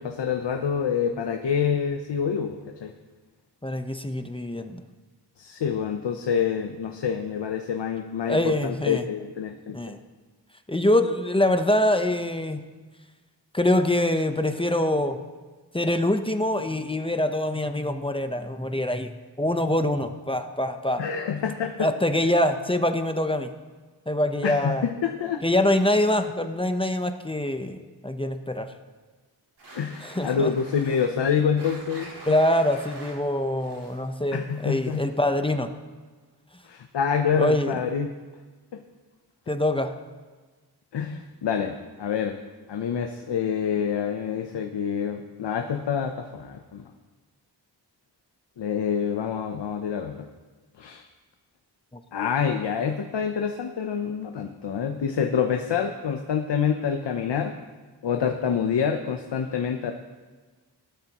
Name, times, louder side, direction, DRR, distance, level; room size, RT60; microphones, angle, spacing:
voice 1, 0.0-2.9 5.4-9.9 21.0-21.9 24.4-25.6 29.7-32.3 34.3-35.0 36.6-38.1 40.9-42.4 42.7-46.9 48.6-50.2 50.8-51.0 52.1-57.5 58.0-59.9, left 7 dB, 80° left, 5 dB, 0.8 m, -27 dB
voice 2, 3.6-4.8 8.3-9.0 9.7-10.0 10.7-12.6 13.5-15.2 15.7-21.0 21.8-23.5 24.1-24.9 25.4-28.7 30.0-30.5 32.3-35.7 37.4-37.8 39.5-39.9, left 1 dB, 15° left, 7 dB, 0.9 m, -24 dB
sound 1, 29.6-35.2, right 1 dB, 75° right, 4.5 m, -46 dB
17.5 x 12.5 x 3.0 m, 1.4 s
cardioid pair, 45°, 42 cm